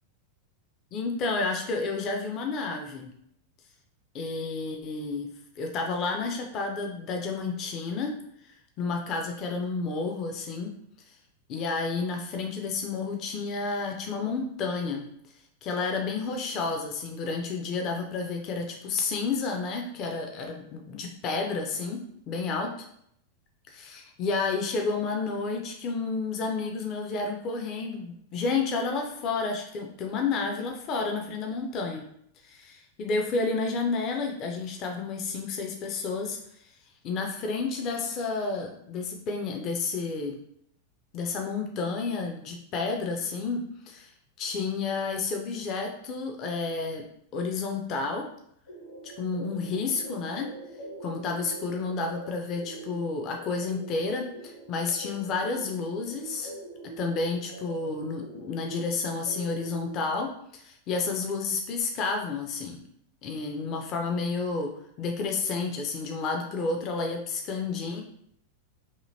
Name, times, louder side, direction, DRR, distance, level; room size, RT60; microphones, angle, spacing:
voice 1, 0.9-3.1 4.1-5.3 5.6-8.1 8.8-10.7 11.5-15.0 15.6-22.0 22.3-22.7 23.7-32.0 32.4-36.4 37.0-40.4 41.1-43.6 43.9-44.1 44.4-47.0 47.3-48.2 49.2-50.5 51.0-56.5 57.0-62.8 63.2-64.7 65.0-68.0, left 4 dB, 35° left, 2 dB, 0.4 m, -30 dB
sound 1, 48.7-59.9, right 2 dB, 50° left, 1.1 m, -44 dB
2.8 x 2.7 x 2.6 m, 0.70 s
figure-of-eight pair, 90°, 0 cm